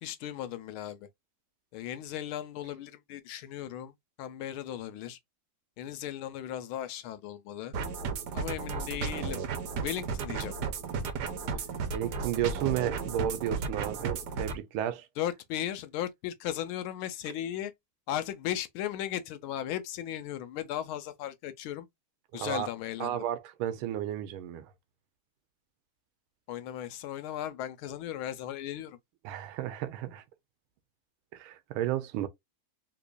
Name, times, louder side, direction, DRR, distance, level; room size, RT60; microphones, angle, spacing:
voice 1, 0.0-1.1 1.7-3.9 4.2-5.2 5.8-7.7 8.3-9.4 9.8-10.6 15.2-17.7 18.1-21.9 22.3-23.2 26.5-29.0, left 11 dB, 80° left, 1.5 m, -36 dB
sound 1, 7.7-14.6, right 5 dB, 65° right, 1.1 m, -34 dB
voice 2, 11.9-15.1 22.3-22.7 23.0-24.7 29.2-30.2 31.3-32.3, right 11 dB, 85° right, 1.5 m, -33 dB
3.9 x 3.0 x 2.3 m
omnidirectional pair, 2.3 m